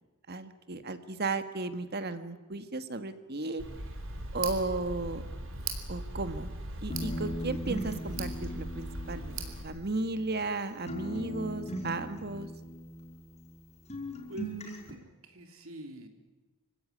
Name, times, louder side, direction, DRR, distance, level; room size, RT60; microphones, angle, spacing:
voice 1, 0.3-3.6 4.3-5.2 5.9-6.5 6.8-9.4 9.6-12.5, right 3 dB, 50° right, 11 dB, 1.6 m, -34 dB
Tick, 3.6-9.6, right 2 dB, 65° right, 3.8 m, -39 dB
sound 1, 6.9-10.6 10.9-13.6 13.9-14.9, equal, 30° left, 5.1 m, -39 dB
voice 2, 14.3-16.1, equal, 80° right, 6 dB, 3.3 m, -45 dB
26.5 x 16.5 x 9.8 m, 1.2 s
head